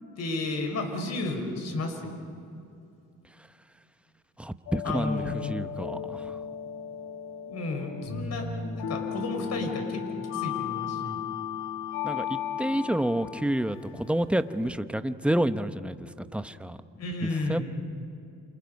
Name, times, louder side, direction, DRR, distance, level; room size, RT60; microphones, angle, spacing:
voice 1, 0.2-2.2 4.8-5.6 7.4-11.2 16.9-17.6, left 2 dB, 60° left, 4 dB, 5.1 m, -33 dB
voice 2, 4.4-6.4 12.0-16.8 17.5-17.6, right 1 dB, 5° right, 10 dB, 1.0 m, -29 dB
sound 1, 4.7-14.8, left 8 dB, 85° left, 2.2 m, -35 dB
29.0 x 28.0 x 5.4 m, 2.5 s
cardioid pair, 90°, 30 cm